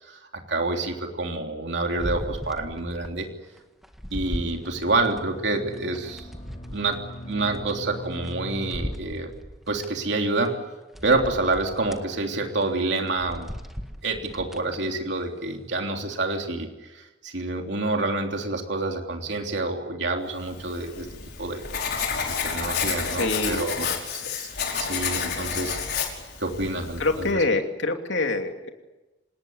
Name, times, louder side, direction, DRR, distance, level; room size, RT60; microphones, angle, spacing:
voice 1, 0.0-3.3 4.1-6.3 6.7-9.3 9.7-10.6 11.0-13.5 14.0-21.1 21.4-21.6 22.3-23.9 24.4-24.5 24.7-25.8 26.4-27.3, right 2 dB, 65° right, 3 dB, 3.3 m, -28 dB
sound 1, 2.0-3.2 3.6-5.2 5.7-8.3 8.7-9.9 10.4-10.5 10.9-12.0 12.5-12.7 13.1-14.8 15.2-15.3, equal, ahead, 1.8 m, -37 dB
sound 2, 4.5-8.9, equal, 30° left, 3.2 m, -40 dB
Writing, 20.6-27.3, left 6 dB, 60° left, 5.3 m, -30 dB
voice 2, 23.1-23.6 24.2-24.4 24.8-25.0 27.0-28.7, left 2 dB, 80° left, 4 dB, 2.9 m, -26 dB
27.5 x 19.5 x 9.6 m, 1.1 s
head